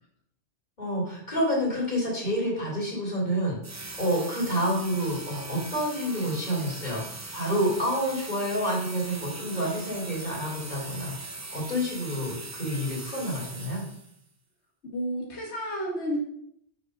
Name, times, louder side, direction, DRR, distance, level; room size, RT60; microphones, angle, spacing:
voice 1, 0.8-3.6 4.0-11.1 11.5-13.9, equal, 45° left, -4 dB, 3.4 m, -28 dB
sound 1, 3.6-14.2, right 2 dB, 20° right, 0.6 m, -40 dB
voice 2, 14.8-16.2, equal, 85° left, -2 dB, 1.7 m, -31 dB
7.1 x 5.0 x 6.4 m, 0.68 s
omnidirectional pair, 1.1 m